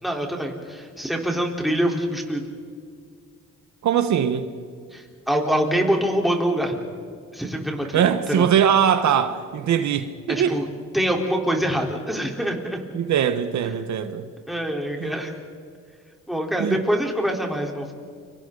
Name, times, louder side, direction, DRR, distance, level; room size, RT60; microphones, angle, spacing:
voice 1, 0.0-2.4 4.9-6.8 7.3-8.0 8.3-8.5 10.3-10.7 10.9-12.8 14.5-15.3 16.3-17.9, equal, ahead, 0 dB, 4.0 m, -25 dB
voice 2, 3.8-4.5 7.9-10.6 12.9-14.3 15.0-15.1 16.6-16.8, right 8 dB, 70° right, 9 dB, 1.3 m, -21 dB
29.5 x 24.5 x 4.0 m, 2.1 s
cardioid pair, 90°, 30 cm